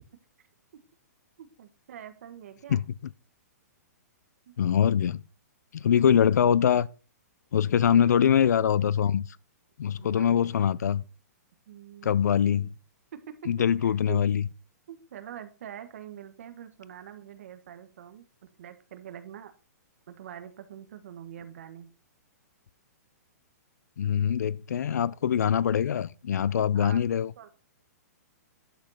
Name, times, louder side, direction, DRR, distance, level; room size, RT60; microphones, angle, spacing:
voice 1, 1.4-2.8 4.4-4.5 7.8-8.1 10.0-10.3 11.7-12.3 13.1-13.4 13.8-14.2 14.9-18.2 18.6-19.5 20.1-21.9 26.7-27.1 27.4-27.5, right 10 dB, 55° right, 1.7 m, -44 dB
voice 2, 4.6-5.2 5.7-6.9 7.5-9.3 9.8-11.0 12.0-12.7 13.5-14.4 24.0-27.3, left 8 dB, 75° left, 0.6 m, -23 dB
11.0 x 5.3 x 5.8 m
hypercardioid pair, 170°, 9 cm